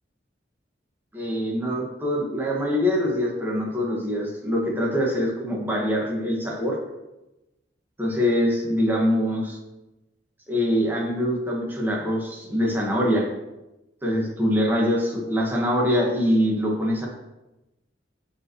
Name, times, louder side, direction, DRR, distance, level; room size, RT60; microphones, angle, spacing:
voice 1, 1.1-6.8 8.0-9.6 10.5-13.3 14.0-17.1, equal, 10° right, -2 dB, 2.0 m, -24 dB
14.5 x 5.5 x 3.3 m, 1.0 s
head